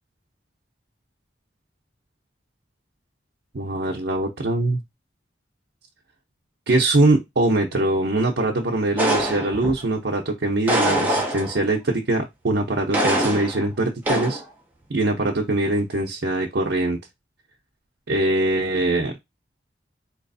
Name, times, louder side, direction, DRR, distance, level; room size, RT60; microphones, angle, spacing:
voice 1, 3.5-4.8 6.7-14.4 14.9-17.0 18.1-19.1, right 2 dB, 65° right, 1 dB, 0.7 m, -22 dB
sound 1, 9.0-9.9 10.7-11.7 12.9-13.7 14.1-14.4, right 1 dB, 10° right, 0.9 m, -23 dB
4.0 x 3.0 x 2.6 m, 0.20 s
head